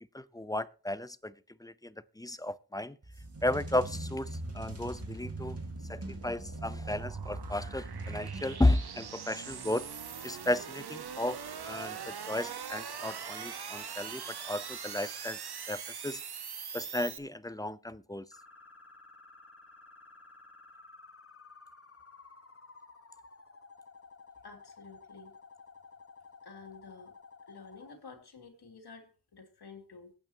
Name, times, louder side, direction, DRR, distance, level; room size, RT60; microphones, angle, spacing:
voice 1, 0.1-1.3 1.6-3.0 3.4-4.3 4.5-5.6 5.9-9.8 10.2-11.4 11.7-15.4 15.7-16.2 16.7-18.2, left 1 dB, 10° left, 0.7 m, -33 dB
sound 1, 3.0-9.0, right 2 dB, 40° right, 3.0 m, -41 dB
sound 2, 3.2-17.2, right 7 dB, 75° right, 1.1 m, -43 dB
sound 3, 18.3-28.0, left 4 dB, 35° left, 1.3 m, -54 dB
voice 2, 24.4-25.3 26.4-27.1 27.5-30.1, left 4 dB, 75° left, 2.9 m, -51 dB
22.5 x 9.0 x 2.9 m
cardioid pair, 55°, 39 cm